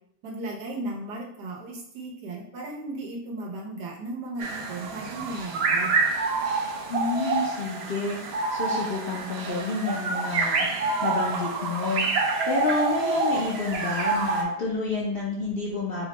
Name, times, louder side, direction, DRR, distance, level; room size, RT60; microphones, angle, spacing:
voice 1, 0.2-6.0, right 2 dB, 90° right, -2 dB, 1.5 m, -36 dB
sound 1, 4.4-14.4, right 3 dB, 65° right, 0.6 m, -27 dB
voice 2, 6.9-10.7 11.0-16.1, left 3 dB, 65° left, -4 dB, 0.5 m, -29 dB
4.4 x 2.2 x 4.0 m, 0.72 s
omnidirectional pair, 1.7 m